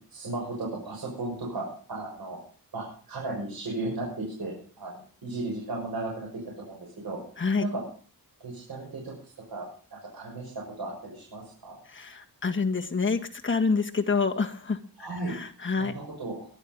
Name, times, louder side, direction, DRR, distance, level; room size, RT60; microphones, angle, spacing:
voice 1, 0.1-2.4 2.7-7.2 7.6-7.8 8.4-11.8 15.0-15.3 15.8-16.5, right 2 dB, 80° right, -3 dB, 6.5 m, -35 dB
voice 2, 12.0-14.8 15.3-15.9, left 4 dB, 30° left, 4 dB, 1.7 m, -27 dB
23.0 x 10.5 x 5.4 m, 0.43 s
wide cardioid pair, 145°, 36 cm